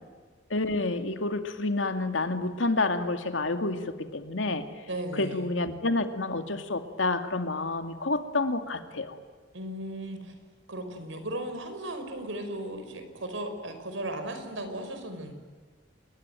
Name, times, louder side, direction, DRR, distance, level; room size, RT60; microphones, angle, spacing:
voice 1, 0.5-4.6 5.2-9.2, left 2 dB, 85° left, 7 dB, 2.4 m, -29 dB
voice 2, 4.9-5.5 9.5-10.3 10.7-15.3, right 1 dB, 90° right, 7 dB, 5.3 m, -36 dB
27.5 x 21.5 x 9.2 m, 1.5 s
head